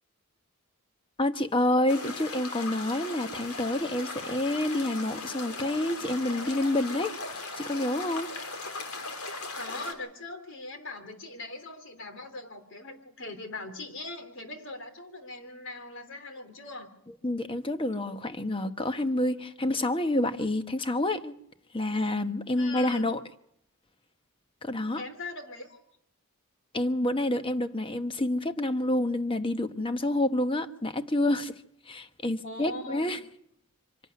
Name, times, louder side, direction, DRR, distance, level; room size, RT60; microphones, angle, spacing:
voice 1, 1.2-7.2 7.6-8.3 17.2-21.3 21.7-23.2 24.6-25.0 26.7-31.5 31.9-33.2, left 1 dB, 25° left, 1.1 m, -28 dB
sound 1, 1.9-9.9, left 3 dB, 85° left, 3.3 m, -38 dB
voice 2, 9.6-16.9 22.5-23.1 24.9-25.8 32.4-33.2, left 2 dB, 55° left, 3.2 m, -41 dB
25.0 x 12.0 x 9.5 m
head